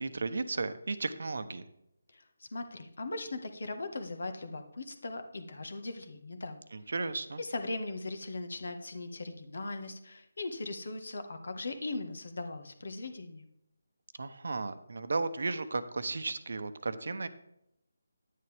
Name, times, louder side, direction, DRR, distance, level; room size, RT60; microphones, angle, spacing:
voice 1, 0.0-1.6 6.7-7.4 14.2-17.3, right 3 dB, 65° right, 11 dB, 0.9 m, -34 dB
voice 2, 2.1-6.6 7.4-13.5, left 2 dB, 65° left, 8 dB, 1.5 m, -39 dB
10.0 x 9.7 x 3.5 m, 0.80 s
figure-of-eight pair, 160°, 0 cm